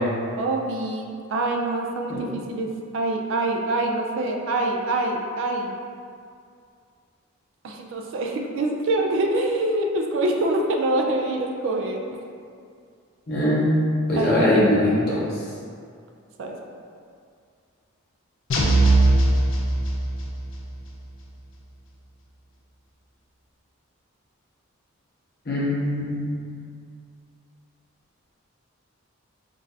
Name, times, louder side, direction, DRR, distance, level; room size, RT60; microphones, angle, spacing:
voice 1, 0.4-5.8 7.6-12.0 14.2-14.7 16.4-16.6, right 2 dB, 60° right, 2 dB, 0.3 m, -25 dB
voice 2, 13.3-15.2 25.5-26.3, left 1 dB, 45° left, -7 dB, 0.8 m, -21 dB
sound 1, 18.5-20.4, right 2 dB, 65° left, 0.5 m, -19 dB
3.8 x 2.4 x 2.7 m, 2.3 s
head